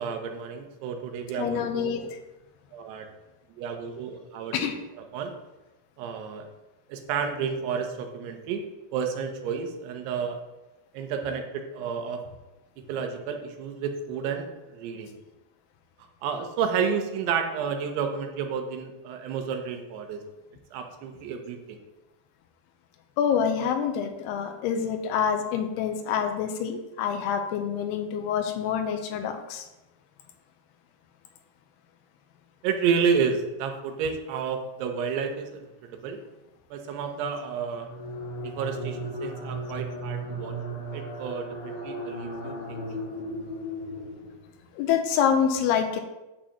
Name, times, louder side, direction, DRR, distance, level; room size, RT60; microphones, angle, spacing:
voice 1, 0.0-2.1 2.7-3.1 3.6-4.7 4.9-5.3 6.0-6.5 6.9-8.7 8.9-10.4 10.9-12.2 12.9-15.1 16.2-20.2 20.7-21.8 32.6-36.2 36.7-37.9 38.4-40.6 40.9-43.0, right 6 dB, 80° right, 5 dB, 2.9 m, -31 dB
voice 2, 1.4-2.0 4.5-4.8 23.2-29.7 44.8-46.0, left 7 dB, 85° left, 5 dB, 2.6 m, -26 dB
sound 1, 37.6-44.6, right 1 dB, 55° left, 1.1 m, -36 dB
8.6 x 7.4 x 2.9 m, 1.0 s
omnidirectional pair, 4.8 m